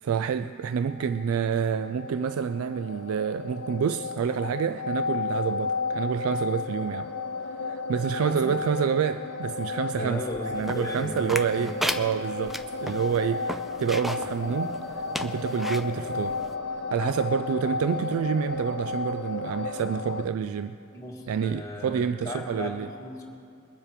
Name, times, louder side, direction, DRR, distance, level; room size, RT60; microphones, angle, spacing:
voice 1, 0.0-7.1 7.6-10.2 10.5-16.4 16.9-20.8 21.3-22.9, right 7 dB, 70° right, 11 dB, 0.3 m, -28 dB
sound 1, 0.7-20.3, left 3 dB, 85° left, 0.8 m, -33 dB
voice 2, 8.2-8.5 9.9-11.8 20.9-23.2, left 1 dB, 15° left, -2 dB, 2.0 m, -36 dB
sound 2, 10.7-14.3 14.7-14.8 15.1-15.9 16.5-16.6, equal, ahead, 0.4 m, -33 dB
22.0 x 7.3 x 5.0 m, 2.7 s
head